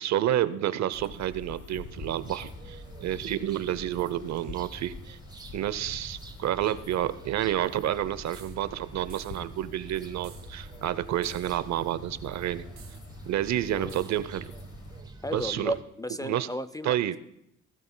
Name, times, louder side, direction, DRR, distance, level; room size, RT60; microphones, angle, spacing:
voice 1, 0.0-5.2 5.5-12.7 13.3-14.5 15.3-15.7 16.2-16.5 16.8-17.2, right 12 dB, 65° right, 15 dB, 0.7 m, -29 dB
sound 1, 0.9-15.0, left 4 dB, 55° left, 1.4 m, -47 dB
sound 2, 1.9-15.8, right 3 dB, 15° right, 1.2 m, -47 dB
sound 3, 8.3-8.6 9.1-9.5 10.2-10.5 11.2-11.6 12.8-13.0 13.9-14.2, right 6 dB, 45° right, 1.6 m, -52 dB
voice 2, 15.2-17.2, equal, 15° left, 15 dB, 0.3 m, -34 dB
18.5 x 12.0 x 2.2 m, 0.80 s
cardioid pair, 90°, 30 cm